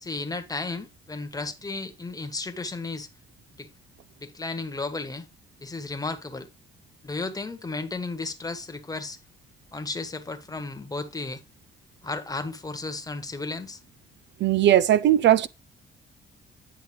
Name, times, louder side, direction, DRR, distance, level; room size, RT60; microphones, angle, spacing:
voice 1, 0.0-3.1 3.6-3.7 4.2-5.3 5.6-6.5 7.0-9.2 9.7-11.4 12.0-13.8, left 3 dB, 20° left, 1.4 m, -34 dB
voice 2, 14.4-15.5, right 12 dB, 65° right, 0.5 m, -18 dB
10.0 x 5.8 x 3.2 m
cardioid pair, 90°, 20 cm